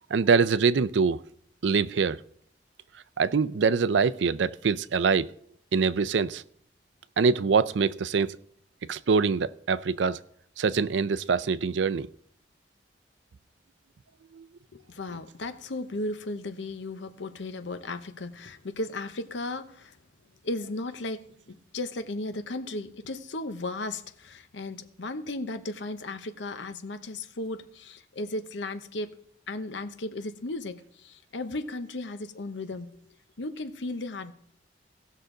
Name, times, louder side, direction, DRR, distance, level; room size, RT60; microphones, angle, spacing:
voice 1, 0.1-1.2 1.6-2.2 3.2-5.3 5.7-6.4 7.2-8.4 8.9-10.2 10.6-12.1 14.3-14.5, right 5 dB, 85° right, 0.5 m, -24 dB
voice 2, 14.7-20.0 20.4-29.2 29.5-32.9 33.4-34.3, left 2 dB, 85° left, 0.9 m, -35 dB
17.5 x 6.4 x 3.8 m
head